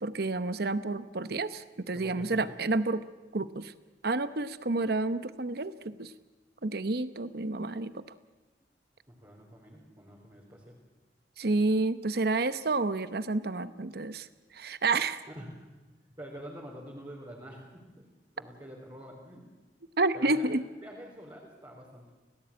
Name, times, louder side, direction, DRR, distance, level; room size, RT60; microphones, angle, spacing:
voice 1, 0.0-3.0 3.3-3.7 4.0-6.1 6.6-8.0 11.4-14.3 14.5-15.2 20.0-20.6, right 3 dB, 60° right, 13 dB, 0.9 m, -29 dB
voice 2, 1.9-2.6 9.1-10.7 15.3-15.6 16.2-18.1 18.4-19.4 20.1-20.5 20.8-22.1, equal, 25° right, -3 dB, 4.2 m, -46 dB
29.0 x 17.5 x 8.7 m, 1.2 s
head